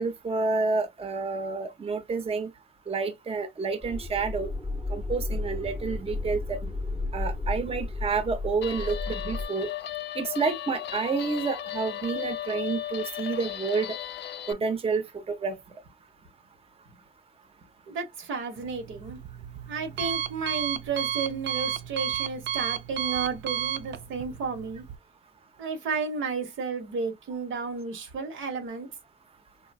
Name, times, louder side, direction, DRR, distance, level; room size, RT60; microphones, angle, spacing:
voice 1, 0.0-2.5 2.9-4.5 4.9-6.6 7.1-9.7 10.2-14.0 14.5-15.0 15.4-15.6, right 4 dB, 30° right, 0.7 m, -29 dB
sound 1, 3.8-9.4, left 2 dB, 5° left, 0.7 m, -33 dB
Guitar, 8.6-14.5, left 12 dB, 60° left, 0.4 m, -36 dB
voice 2, 17.9-19.2 19.7-24.8 25.6-28.9, right 4 dB, 80° right, 1.3 m, -32 dB
Alarm, 18.6-25.0, right 10 dB, 65° right, 0.5 m, -33 dB
4.0 x 2.4 x 2.3 m
cardioid pair, 90°, 20 cm